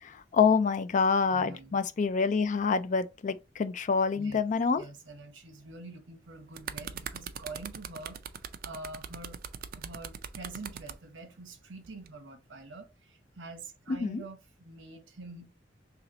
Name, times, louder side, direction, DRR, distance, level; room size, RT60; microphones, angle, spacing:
voice 1, 0.0-4.8 13.9-14.2, left 5 dB, 45° left, 0.4 m, -27 dB
voice 2, 1.3-1.8 4.1-4.4 4.8-8.2 8.6-9.4 9.7-15.5, right 2 dB, 85° right, 1.0 m, -46 dB
sound 1, 6.3-11.0 11.8-12.1, right 8 dB, 55° right, 0.4 m, -40 dB
3.0 x 2.9 x 3.8 m
head